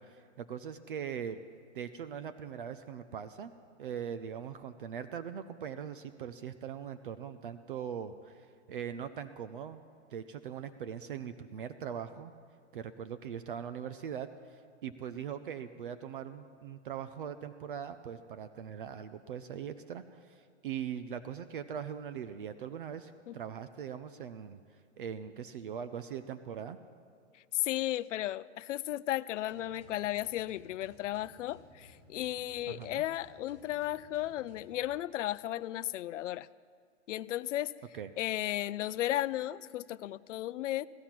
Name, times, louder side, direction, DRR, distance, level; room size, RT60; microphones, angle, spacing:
voice 1, 0.0-1.4 1.7-3.5 3.8-9.8 10.1-12.3 12.7-24.6 25.0-26.8 32.7-33.0 37.9-38.1, right 8 dB, 45° right, 11 dB, 0.5 m, -41 dB
voice 2, 27.5-36.5 37.1-37.7 38.2-40.9, left 14 dB, 90° left, 16 dB, 0.5 m, -34 dB
sound 1, 29.5-34.8, left 1 dB, 20° right, 3.7 m, -59 dB
16.0 x 14.5 x 5.9 m, 2.2 s
supercardioid pair, 180°, 36 cm